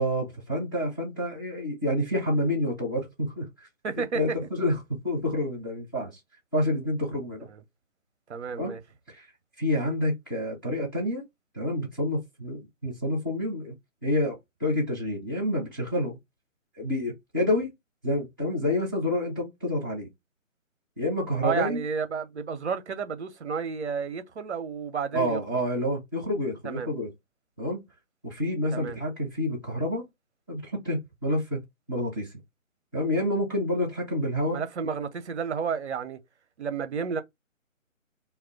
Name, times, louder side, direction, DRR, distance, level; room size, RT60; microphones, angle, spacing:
voice 1, 0.0-3.5 4.1-6.2 6.5-7.5 8.5-8.7 9.1-9.3 9.6-11.2 11.5-13.7 14.0-16.2 16.8-17.7 18.0-20.1 21.0-21.8 25.1-27.1 27.6-27.8 28.2-30.1 30.5-32.3 32.9-34.6, left 1 dB, 15° left, 0.5 m, -28 dB
voice 2, 3.8-4.2 7.5-7.6 8.3-8.8 21.4-25.4 26.6-26.9 28.7-29.0 34.5-36.2 36.6-37.2, right 6 dB, 60° right, 0.5 m, -31 dB
2.2 x 2.1 x 3.4 m
figure-of-eight pair, 150°, 40 cm